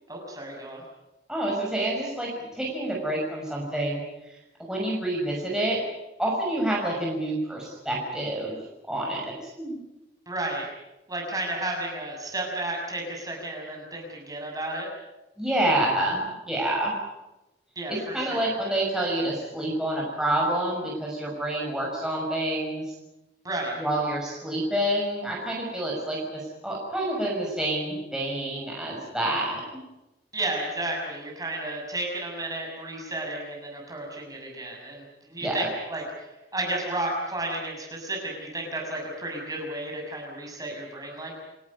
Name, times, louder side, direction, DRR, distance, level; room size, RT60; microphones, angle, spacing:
voice 1, 0.1-0.8 10.3-10.7 11.1-14.9 17.7-18.5 23.4-23.8 30.3-36.0 36.5-41.4, right 2 dB, 20° right, 0 dB, 6.6 m, -32 dB
voice 2, 1.3-4.0 4.6-5.8 6.2-8.6 8.9-9.8 15.4-16.9 17.9-22.8 23.8-29.8 35.4-35.7, right 1 dB, 5° right, -3 dB, 6.2 m, -28 dB
29.5 x 14.0 x 9.7 m, 0.97 s
head